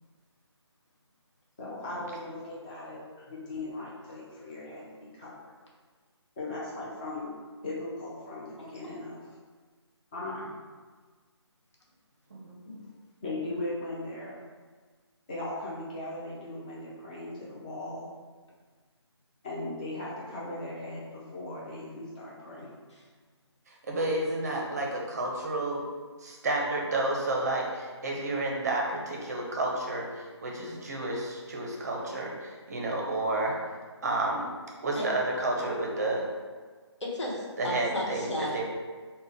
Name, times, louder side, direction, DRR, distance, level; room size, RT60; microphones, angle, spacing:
voice 1, 1.6-5.3 6.4-7.3 7.6-9.3 10.1-10.6 13.2-14.4 15.3-18.1 19.4-22.8, left 2 dB, 20° left, -7 dB, 0.4 m, -38 dB
voice 2, 12.3-12.6 23.7-25.8 26.2-33.6 34.0-34.5 34.8-36.2 37.6-38.6, right 2 dB, 35° right, -1 dB, 0.5 m, -31 dB
voice 3, 37.0-38.6, left 1 dB, 80° left, -4 dB, 1.0 m, -34 dB
3.7 x 2.1 x 3.3 m, 1.5 s
figure-of-eight pair, 155°, 15 cm